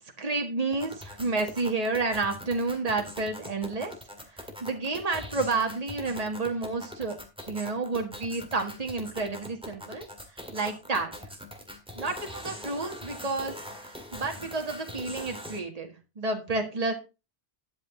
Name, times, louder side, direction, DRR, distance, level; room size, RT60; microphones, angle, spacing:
voice 1, 0.2-3.9 4.6-7.2 7.5-10.1 10.5-11.1 12.0-13.5 13.9-16.9, right 3 dB, 35° right, 3 dB, 1.8 m, -30 dB
sound 1, 0.7-15.6, left 1 dB, 5° right, 1.9 m, -42 dB
11.5 x 8.0 x 3.8 m, 0.29 s
omnidirectional pair, 1.1 m